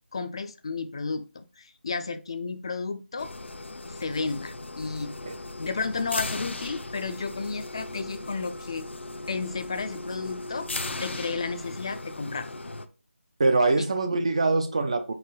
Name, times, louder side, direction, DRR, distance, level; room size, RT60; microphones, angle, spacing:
voice 1, 0.1-3.3 3.9-5.1 5.6-8.9 9.3-10.7 11.0-12.5 13.8-13.9, left 4 dB, 25° left, 0.4 m, -32 dB
sound 1, 3.2-12.9, left 2 dB, 65° left, 0.7 m, -37 dB
voice 2, 13.4-15.1, right 3 dB, 30° right, 0.4 m, -23 dB
4.7 x 4.5 x 4.6 m
figure-of-eight pair, 170°, 7 cm